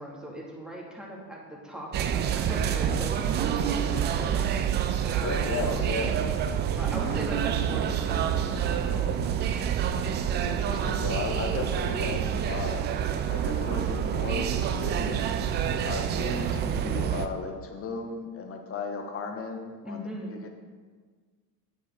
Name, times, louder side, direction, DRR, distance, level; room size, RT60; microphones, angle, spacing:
voice 1, 0.0-4.5 5.1-5.8 6.8-9.2 19.8-20.3, equal, ahead, -3 dB, 2.1 m, -39 dB
sound 1, 1.9-17.3, right 9 dB, 25° right, 0.3 m, -27 dB
voice 2, 5.2-6.2 10.3-15.3 15.8-20.5, left 4 dB, 25° left, 4 dB, 1.2 m, -35 dB
9.2 x 7.0 x 3.7 m, 1.5 s
hypercardioid pair, 85°, 49 cm